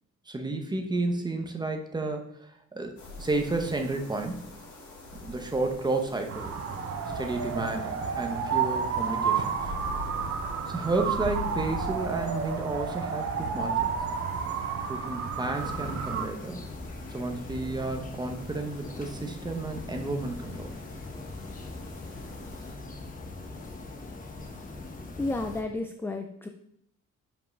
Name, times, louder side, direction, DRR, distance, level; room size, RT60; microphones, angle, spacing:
voice 1, 0.3-2.2 2.7-4.4 5.2-6.6 7.1-9.5 10.7-13.9 14.9-16.6 17.1-20.7, right 2 dB, 15° right, 4 dB, 0.8 m, -31 dB
sound 1, 3.0-22.7, left 2 dB, 70° left, 2.4 m, -45 dB
sound 2, 6.3-16.3, right 6 dB, 50° right, 0.8 m, -31 dB
sound 3, 15.5-25.6, left 2 dB, 30° left, 1.0 m, -41 dB
voice 2, 25.2-26.5, left 2 dB, 10° left, 5 dB, 0.3 m, -32 dB
5.5 x 5.4 x 5.3 m, 0.69 s
cardioid pair, 165°, 29 cm